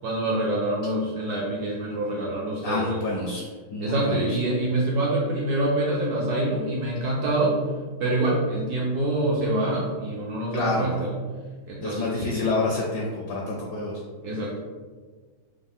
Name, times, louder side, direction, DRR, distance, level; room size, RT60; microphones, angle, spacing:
voice 1, 0.0-3.0 3.8-7.6 8.0-11.1 11.7-12.5 14.2-14.6, right 1 dB, 70° right, -4 dB, 0.9 m, -26 dB
voice 2, 2.6-3.4 3.7-4.4 10.5-10.9 11.8-13.9, left 2 dB, 70° left, -1 dB, 1.0 m, -28 dB
5.0 x 2.2 x 3.5 m, 1.5 s
omnidirectional pair, 2.3 m